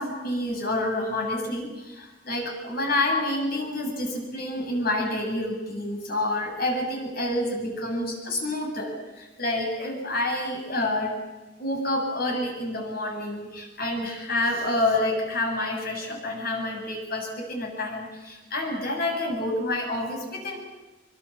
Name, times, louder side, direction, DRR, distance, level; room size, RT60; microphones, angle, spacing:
voice 1, 0.0-11.2 11.6-20.6, left 1 dB, 50° left, 2 dB, 7.5 m, -28 dB
24.5 x 24.0 x 7.3 m, 1.1 s
head